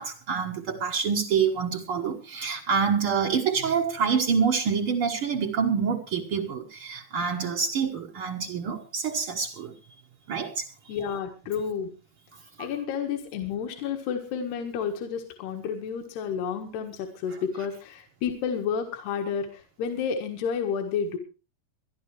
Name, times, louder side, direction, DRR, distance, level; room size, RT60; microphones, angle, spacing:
voice 1, 0.0-9.7 10.3-10.9 12.6-12.7, right 6 dB, 80° right, 0 dB, 1.2 m, -27 dB
voice 2, 10.9-11.9 12.6-21.2, left 7 dB, 75° left, 4 dB, 3.6 m, -30 dB
24.0 x 11.5 x 3.3 m, 0.33 s
omnidirectional pair, 4.7 m